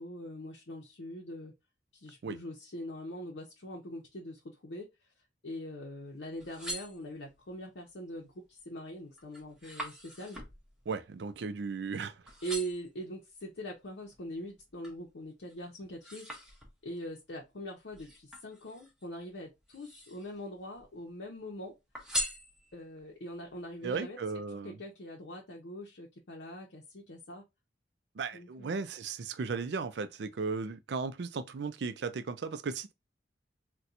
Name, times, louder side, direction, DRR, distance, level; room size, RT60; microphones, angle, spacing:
voice 1, 0.0-1.5 1.9-4.9 5.4-10.4 12.4-16.3 16.8-21.8 22.7-24.2 24.5-27.4 28.3-28.7, right 1 dB, 75° left, 0.7 m, -42 dB
sound 1, 6.3-7.5 8.1-8.5 8.9-12.0 12.3-13.0 13.6-15.1 15.5-17.0 17.9-19.1 19.6-20.4 20.7-21.5 21.9-23.0 23.5-23.6, equal, 5° right, 0.8 m, -42 dB
voice 2, 10.9-12.2 23.8-24.8 28.2-32.9, right 4 dB, 65° right, 0.4 m, -36 dB
4.2 x 2.2 x 2.5 m
head